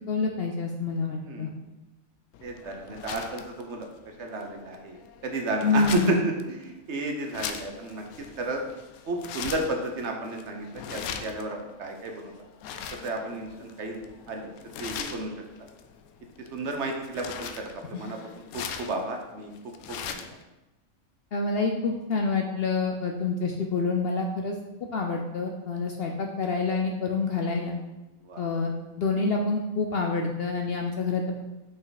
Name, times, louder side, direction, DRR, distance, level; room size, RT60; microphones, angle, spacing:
voice 1, 0.1-1.5 5.6-6.1 17.9-18.0 21.3-24.6 24.9-27.8 28.4-31.4, left 4 dB, 60° left, 2 dB, 0.7 m, -27 dB
sound 1, 2.3-20.4, left 7 dB, 85° left, 1.0 m, -41 dB
voice 2, 2.4-3.9 4.2-6.3 6.6-8.0 8.4-8.6 9.1-12.1 13.0-14.5 14.8-15.3 16.5-18.2 18.5-19.5 19.9-20.3 28.3-28.4, right 2 dB, 55° right, 3 dB, 1.0 m, -32 dB
5.6 x 5.5 x 4.0 m, 1.0 s
omnidirectional pair, 1.5 m